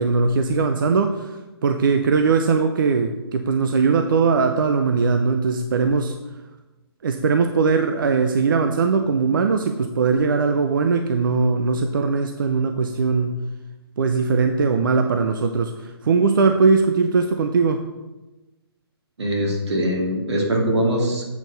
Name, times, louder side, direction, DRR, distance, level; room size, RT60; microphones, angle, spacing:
voice 1, 0.0-6.1 7.0-13.4 14.0-17.8, right 4 dB, 50° right, 7 dB, 0.5 m, -20 dB
voice 2, 19.2-21.2, equal, 85° right, 0 dB, 2.4 m, -22 dB
8.0 x 4.7 x 5.3 m, 1.1 s
hypercardioid pair, 175°, 14 cm